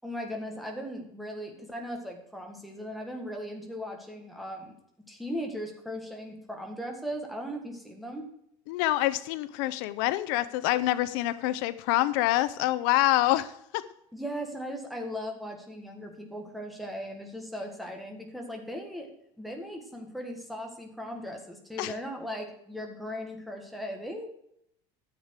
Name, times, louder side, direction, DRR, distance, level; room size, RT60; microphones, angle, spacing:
voice 1, 0.0-4.7 5.1-8.3 14.1-19.1 19.4-24.3, equal, ahead, 2 dB, 1.8 m, -38 dB
voice 2, 8.7-13.8 21.8-21.9, left 16 dB, 70° left, 15 dB, 0.6 m, -26 dB
13.5 x 7.4 x 4.8 m, 0.73 s
cardioid pair, 170°, 12 cm